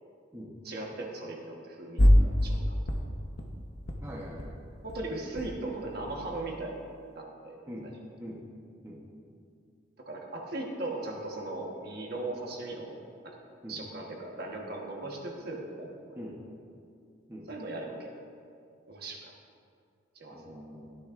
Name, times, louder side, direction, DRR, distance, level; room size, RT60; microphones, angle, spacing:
voice 1, 0.6-2.8 4.8-6.7 7.1-7.6 10.1-13.0 13.2-13.3 13.7-16.0 17.5-18.1 18.9-19.3 20.1-20.4, right 2 dB, 50° right, -1 dB, 1.4 m, -38 dB
sound 1, 2.0-2.6 2.9-3.5 3.8-4.0 4.3-4.4 4.7-5.5 5.8-6.7, equal, 55° left, 1.0 m, -26 dB
voice 2, 4.0-4.6 7.7-7.9 8.2-8.4 8.8-9.0 13.6-13.8 16.1-16.4 17.3-17.5 20.3-20.9, equal, 15° right, -4 dB, 1.0 m, -43 dB
14.5 x 10.5 x 2.6 m, 2.4 s
head